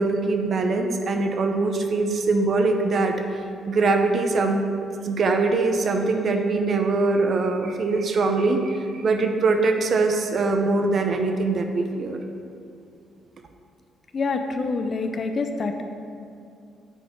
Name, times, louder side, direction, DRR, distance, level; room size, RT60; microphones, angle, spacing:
voice 1, 0.0-3.2 3.7-4.6 5.0-12.2, right 3 dB, 55° right, 5 dB, 0.7 m, -22 dB
voice 2, 14.1-15.8, left 3 dB, 45° left, 6 dB, 0.6 m, -26 dB
9.0 x 4.1 x 4.6 m, 2.5 s
cardioid pair, 90°, 0 cm